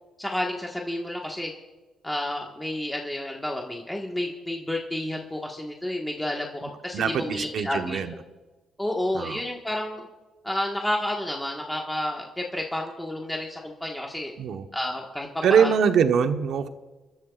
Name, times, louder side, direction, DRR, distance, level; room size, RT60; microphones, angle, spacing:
voice 1, 0.2-1.5 2.0-8.0 8.8-10.1 10.4-14.3 14.7-15.7, left 1 dB, 5° left, -1 dB, 1.6 m, -30 dB
voice 2, 6.9-8.1 9.1-9.4 14.4-14.7 15.4-16.7, right 7 dB, 70° right, 7 dB, 1.1 m, -23 dB
29.5 x 12.0 x 2.5 m, 1.2 s
cardioid pair, 90°, 0 cm